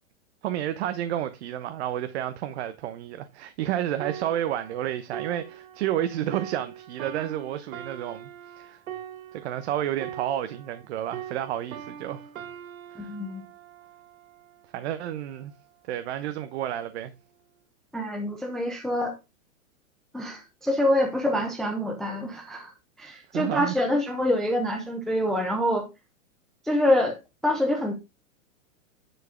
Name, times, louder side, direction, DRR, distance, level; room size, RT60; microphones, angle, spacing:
voice 1, 0.4-8.8 9.3-12.3 13.0-13.1 14.7-15.5 15.9-17.1 23.3-23.7, right 11 dB, 50° right, 0.9 m, -31 dB
sound 1, 4.0-10.9 11.1-14.7 15.4-15.6, right 10 dB, 75° right, 1.7 m, -42 dB
voice 2, 13.0-13.5 17.9-19.1 20.1-22.7 23.0-25.9 26.6-27.2 27.4-27.9, left 1 dB, ahead, 0.4 m, -26 dB
10.0 x 4.6 x 5.0 m
hypercardioid pair, 150°, 41 cm